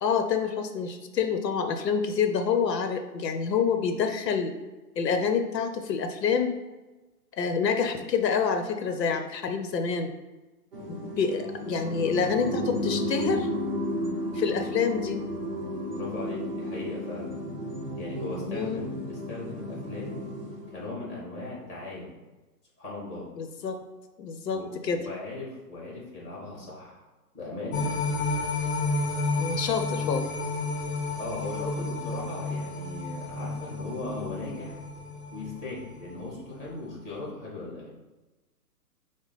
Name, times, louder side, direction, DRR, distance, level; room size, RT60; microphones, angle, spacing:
voice 1, 0.0-4.5 5.0-6.6 7.4-10.1 10.9-13.5 14.3-15.2 18.5-18.8 23.4-23.8 24.2-25.0 29.4-30.3, left 6 dB, 85° left, 6 dB, 0.7 m, -27 dB
sound 1, 10.7-20.9, equal, 35° right, 0.7 m, -33 dB
voice 2, 15.9-17.3 18.0-20.2 20.7-22.1 22.8-23.3 24.5-27.0 27.3-28.0 31.2-34.8 35.3-37.9, left 2 dB, 15° left, -5 dB, 1.4 m, -38 dB
sound 2, 27.7-36.1 36.5-36.6, left 3 dB, 40° left, 0.7 m, -31 dB
6.0 x 2.1 x 3.9 m, 1.2 s
hypercardioid pair, 165°, 48 cm